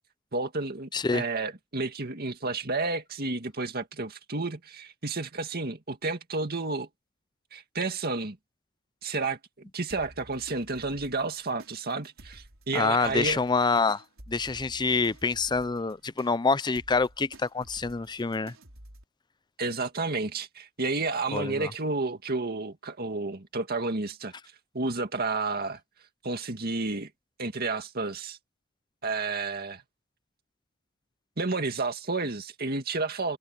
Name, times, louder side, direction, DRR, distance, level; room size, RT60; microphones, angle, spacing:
voice 1, 0.3-6.9 7.5-8.4 9.0-9.4 9.7-13.4 19.6-24.3 24.7-25.8 26.2-27.1 27.4-28.4 29.0-29.8 31.4-33.4, right 3 dB, 50° right, 2.1 m, -31 dB
voice 2, 0.9-1.2 12.7-14.0 14.3-18.5 21.3-21.7, left 4 dB, 20° left, 0.5 m, -26 dB
sound 1, 9.9-19.0, right 1 dB, 70° right, 4.9 m, -52 dB
head